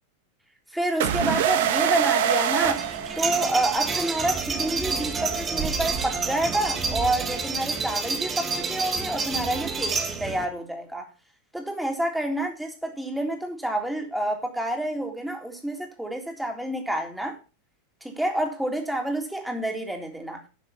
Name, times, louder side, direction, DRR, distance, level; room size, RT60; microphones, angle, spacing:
voice 1, 0.7-2.9 3.1-11.1 11.5-17.4 18.0-20.4, right 1 dB, 5° right, 3.4 m, -28 dB
sound 1, 1.0-3.8, right 9 dB, 55° right, 1.5 m, -24 dB
sound 2, 2.6-10.4, right 5 dB, 20° right, 1.8 m, -29 dB
12.5 x 7.2 x 5.7 m
figure-of-eight pair, 90°, 0 cm